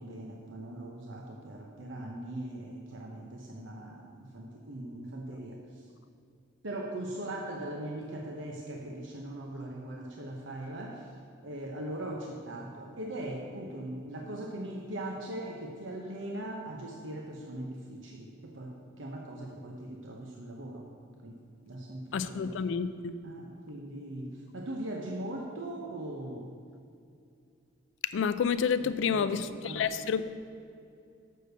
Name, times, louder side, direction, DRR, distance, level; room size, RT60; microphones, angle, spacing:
voice 1, 0.0-5.6 6.6-11.1 11.4-20.9 21.2-21.4 21.7-22.5 23.2-26.5 28.8-29.9, right 1 dB, 75° right, 0 dB, 0.8 m, -40 dB
voice 2, 22.1-23.2 28.1-30.3, left 6 dB, 70° left, 13 dB, 0.3 m, -29 dB
6.7 x 6.4 x 6.6 m, 2.5 s
head